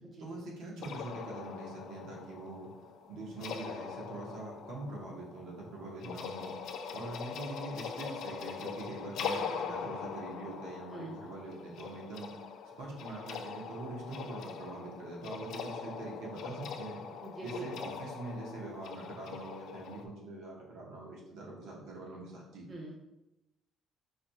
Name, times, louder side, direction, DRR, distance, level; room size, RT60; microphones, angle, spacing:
voice 1, 0.2-2.7 3.1-6.5 6.9-12.3 12.8-17.0 17.4-22.7, right 2 dB, 85° right, -3 dB, 1.3 m, -43 dB
sound 1, 0.8-20.0, left 6 dB, 65° left, 0.5 m, -42 dB
voice 2, 17.2-17.9 22.7-22.9, right 2 dB, 35° right, -3 dB, 1.0 m, -43 dB
4.8 x 4.6 x 2.3 m, 0.92 s
cardioid pair, 140°, 0 cm